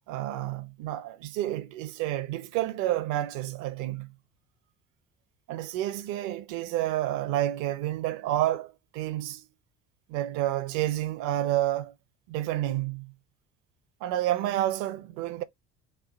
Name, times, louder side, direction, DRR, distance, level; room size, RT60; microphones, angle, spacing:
voice 1, 0.1-4.1 5.5-9.5 10.1-11.9 12.3-13.1 14.0-15.4, right 14 dB, 65° right, 0.7 m, -29 dB
3.3 x 2.3 x 3.7 m
hypercardioid pair, 60°, 33 cm